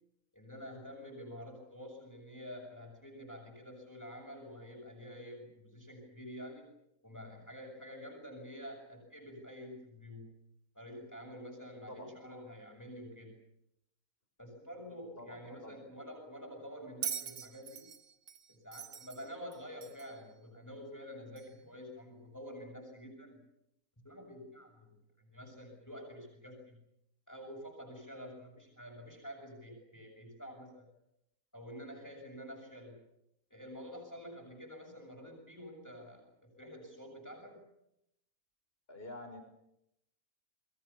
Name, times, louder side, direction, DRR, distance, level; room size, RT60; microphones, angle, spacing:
voice 1, 0.3-6.7 7.0-10.3 10.7-13.4 14.4-17.9 18.5-23.4 24.0-26.8 27.3-30.9 31.5-33.0 33.5-37.6, equal, 10° left, 0 dB, 6.9 m, -48 dB
voice 2, 15.2-15.8 38.9-39.4, left 1 dB, 40° left, 5 dB, 6.1 m, -47 dB
Bell, 17.0-20.2 21.4-21.5, right 8 dB, 65° right, 1.5 m, -42 dB
27.5 x 22.0 x 7.1 m, 0.79 s
omnidirectional pair, 1.6 m